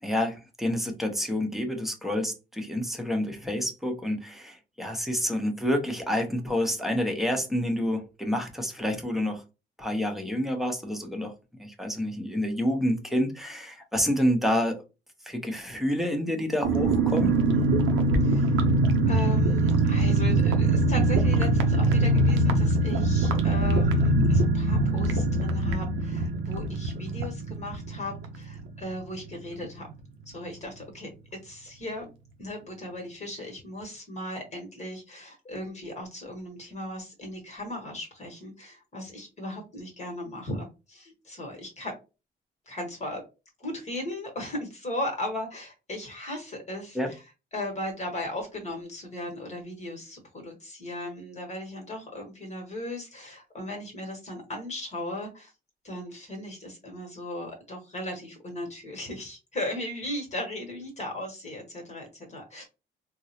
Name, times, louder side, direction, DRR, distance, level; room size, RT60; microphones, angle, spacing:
voice 1, 0.0-9.4 9.8-11.3 11.6-14.8 15.2-17.3 46.9-47.1, left 1 dB, ahead, 0.8 m, -28 dB
sound 1, 16.6-29.0 29.3-29.4 29.6-29.9, right 2 dB, 80° right, 0.6 m, -23 dB
voice 2, 17.5-17.8 18.2-18.6 19.1-29.9 30.3-31.1 31.4-32.1 32.4-41.9 42.7-43.2 43.6-47.2 47.5-55.5 55.8-62.7, left 1 dB, 35° left, 1.2 m, -37 dB
3.7 x 2.0 x 2.8 m
cardioid pair, 90°, 20 cm